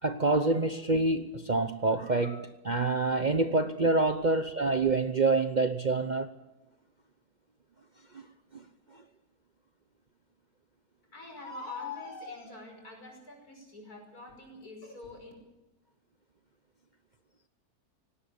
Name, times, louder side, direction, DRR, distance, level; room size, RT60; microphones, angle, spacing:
voice 1, 0.0-6.3 8.1-8.2 8.5-8.6, right 3 dB, 40° right, 0.8 m, -27 dB
voice 2, 11.1-15.3, left 3 dB, 70° left, 6.2 m, -43 dB
18.5 x 18.5 x 8.6 m
omnidirectional pair, 1.7 m